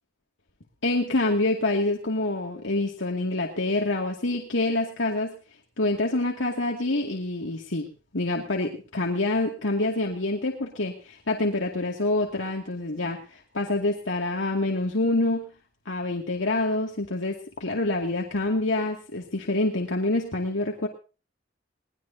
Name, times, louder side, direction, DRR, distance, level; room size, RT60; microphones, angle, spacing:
voice 1, 0.8-5.4 5.8-7.9 8.1-15.5 15.9-20.9, left 2 dB, 85° left, 0 dB, 2.3 m, -26 dB
21.5 x 19.0 x 2.8 m, 0.35 s
head